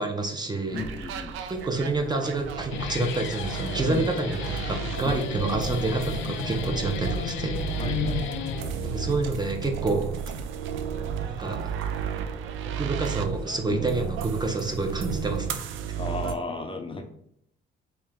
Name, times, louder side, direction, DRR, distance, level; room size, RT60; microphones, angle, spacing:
voice 1, 0.0-0.8 1.5-7.6 8.8-10.1 11.3-11.6 12.7-15.6, right 3 dB, 20° right, 3 dB, 0.6 m, -28 dB
voice 2, 0.7-1.3 3.9-4.2 5.0-5.2 7.8-8.2 13.7-13.8 16.0-17.0, left 3 dB, 25° left, 4 dB, 0.5 m, -34 dB
sound 1, 0.7-16.4, right 7 dB, 80° right, 0.4 m, -33 dB
Guitar, 2.5-9.1, left 8 dB, 80° left, 0.4 m, -33 dB
3.1 x 2.8 x 3.6 m, 0.73 s
cardioid pair, 90°, 20 cm